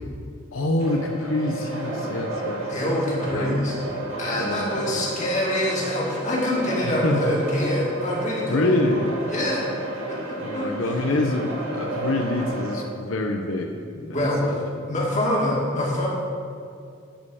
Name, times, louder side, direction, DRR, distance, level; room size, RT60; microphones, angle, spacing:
voice 1, 0.5-3.0 3.2-3.5 4.3-4.9 6.8-7.3 8.5-9.1 10.4-14.7, left 2 dB, 90° left, 3 dB, 0.8 m, -26 dB
sound 1, 0.8-12.8, right 2 dB, 85° right, 2.7 m, -32 dB
voice 2, 2.7-3.7 4.2-8.8 9.3-9.6 10.1-10.7 14.1-14.4 14.9-16.1, left 1 dB, 35° left, -4 dB, 2.2 m, -25 dB
10.5 x 5.4 x 7.0 m, 2.4 s
head